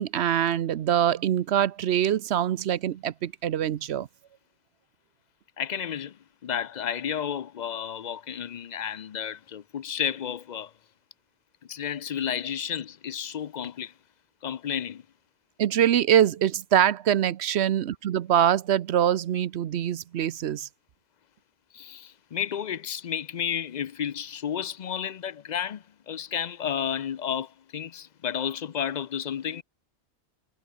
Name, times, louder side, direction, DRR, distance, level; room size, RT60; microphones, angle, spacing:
voice 1, 0.0-4.1 15.6-20.7, right 10 dB, 75° right, 1.0 m, -24 dB
voice 2, 5.6-6.1 6.4-10.7 11.7-13.9 14.4-15.0 21.7-29.6, left 8 dB, 50° left, 0.6 m, -32 dB
omnidirectional pair, 1.1 m